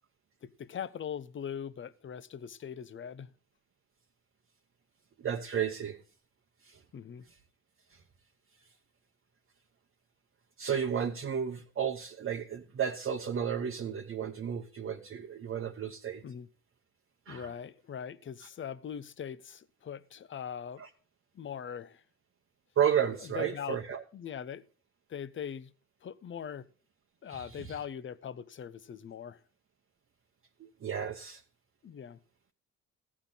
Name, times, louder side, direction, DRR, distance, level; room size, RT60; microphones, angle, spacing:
voice 1, 0.4-3.3 6.9-7.3 16.2-16.5 17.3-20.8 21.3-22.0 23.3-23.8 24.1-24.6 25.1-25.7 26.0-26.7 27.2-29.4 31.8-32.2, left 8 dB, 40° left, 0.8 m, -41 dB
voice 2, 5.2-6.0 6.6-6.8 10.6-16.2 17.3-17.5 20.8-20.9 22.8-24.0 27.3-27.8 30.6-31.4, right 8 dB, 45° right, 1.0 m, -33 dB
14.5 x 8.7 x 4.0 m
cardioid pair, 90°, 30 cm